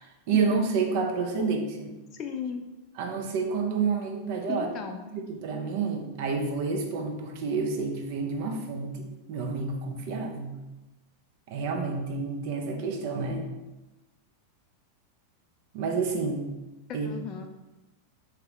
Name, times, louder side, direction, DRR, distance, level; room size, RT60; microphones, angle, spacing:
voice 1, 0.0-1.6 3.0-4.7 5.1-10.5 11.5-13.5 15.7-16.5 16.9-17.1, right 4 dB, 50° right, 2 dB, 0.5 m, -29 dB
voice 2, 2.1-2.6 4.5-5.0 16.9-17.5, left 7 dB, 35° left, 5 dB, 0.3 m, -35 dB
3.6 x 2.9 x 3.0 m, 1.1 s
figure-of-eight pair, 90°, 0 cm